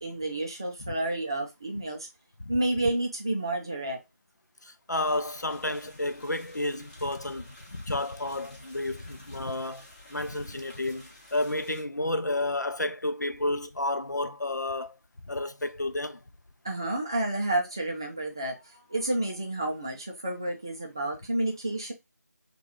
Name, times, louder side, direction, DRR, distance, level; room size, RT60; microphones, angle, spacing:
voice 1, 0.0-2.1 2.5-4.0 16.6-21.9, right 1 dB, 15° right, 0.4 m, -30 dB
voice 2, 4.6-15.0 15.3-16.2, left 2 dB, 80° left, 0.5 m, -31 dB
sound 1, 4.9-11.8, left 1 dB, 30° left, 1.6 m, -53 dB
4.4 x 2.3 x 3.0 m
figure-of-eight pair, 160°, 9 cm